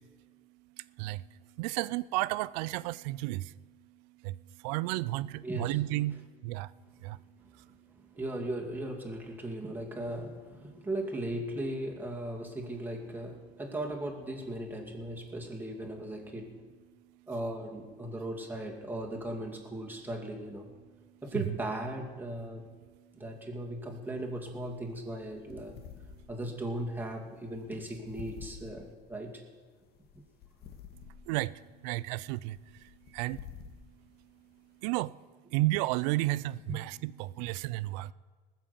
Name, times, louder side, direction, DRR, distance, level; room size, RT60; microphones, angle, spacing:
voice 1, 1.6-3.5 4.2-4.4 4.6-6.7 7.0-7.2 31.3-32.6 33.1-33.4 34.8-35.1 35.5-38.1, right 18 dB, 85° right, 0.5 m, -32 dB
voice 2, 5.4-5.8 8.2-16.6 17.3-20.7 21.2-22.7 23.1-25.8 26.3-29.4 36.7-36.8, right 1 dB, 10° right, 2.5 m, -37 dB
sound 1, 24.4-34.9, left 7 dB, 50° left, 1.7 m, -51 dB
19.0 x 7.5 x 6.8 m
supercardioid pair, 110°, 21 cm